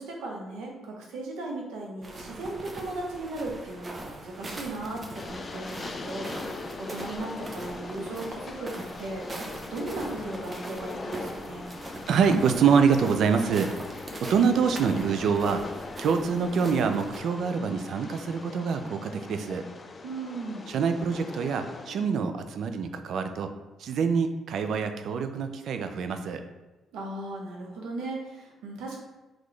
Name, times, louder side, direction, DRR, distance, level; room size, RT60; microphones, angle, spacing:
voice 1, 0.0-6.3 6.8-9.3 9.7-11.7 20.0-20.7 26.9-29.0, right 2 dB, 90° right, 0 dB, 0.8 m, -37 dB
sound 1, 2.0-17.2, right 2 dB, 30° right, 0.6 m, -42 dB
Train, 5.1-22.1, left 3 dB, 35° left, 0.4 m, -41 dB
voice 2, 12.1-13.7 14.2-15.7 16.0-19.7 20.7-23.5 23.8-26.4, right 6 dB, 70° right, 8 dB, 0.4 m, -25 dB
4.1 x 3.0 x 3.2 m, 1.1 s
cardioid pair, 90°, 0 cm